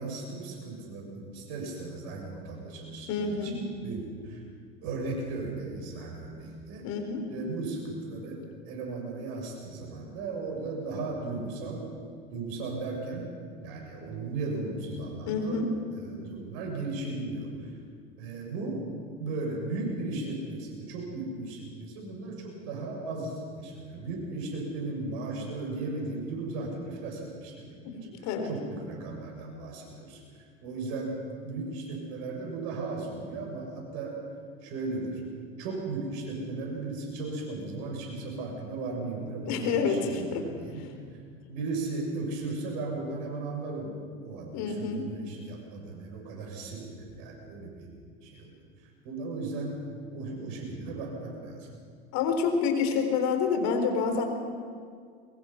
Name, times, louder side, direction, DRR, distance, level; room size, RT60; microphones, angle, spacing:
voice 1, 0.0-4.4 4.8-6.8 7.3-11.9 12.3-13.3 13.6-15.6 15.9-17.7 18.2-18.8 19.2-31.2 31.4-34.2 34.6-35.2 35.6-40.9 41.5-47.9 48.2-48.5 49.0-49.8 50.1-51.7, right 3 dB, 65° right, 0 dB, 7.3 m, -36 dB
voice 2, 3.1-3.6 6.8-7.3 15.3-15.7 27.8-28.5 39.5-40.4 44.5-45.1 52.1-54.2, left 5 dB, 55° left, 6 dB, 3.7 m, -28 dB
23.5 x 21.0 x 5.8 m, 2.1 s
hypercardioid pair, 90°, 32 cm